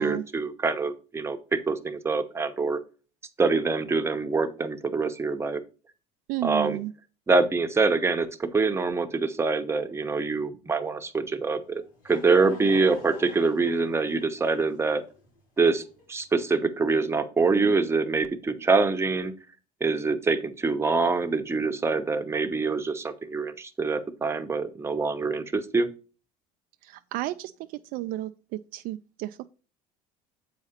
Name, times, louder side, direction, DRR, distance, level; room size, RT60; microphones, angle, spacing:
voice 1, 0.0-2.8 3.4-5.6 6.4-6.8 7.3-15.0 15.6-19.3 19.8-25.9, right 4 dB, 15° right, 0.9 m, -25 dB
voice 2, 6.3-6.9 26.8-27.5 27.9-29.5, right 16 dB, 60° right, 0.4 m, -32 dB
Laughter / Crowd, 11.6-16.3, left 3 dB, 85° left, 4.6 m, -46 dB
7.8 x 4.9 x 4.3 m
supercardioid pair, 105°, 16 cm